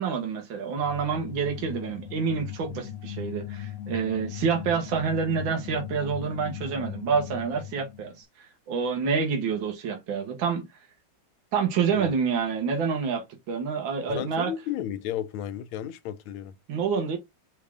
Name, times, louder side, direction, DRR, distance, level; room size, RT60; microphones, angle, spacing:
voice 1, 0.0-8.1 8.7-10.6 11.5-14.5 16.7-17.2, right 6 dB, 70° right, 1.9 m, -27 dB
sound 1, 0.8-8.1, left 11 dB, 65° left, 0.8 m, -39 dB
voice 2, 14.1-16.5, left 11 dB, 85° left, 1.4 m, -33 dB
5.3 x 2.5 x 3.5 m
omnidirectional pair, 2.2 m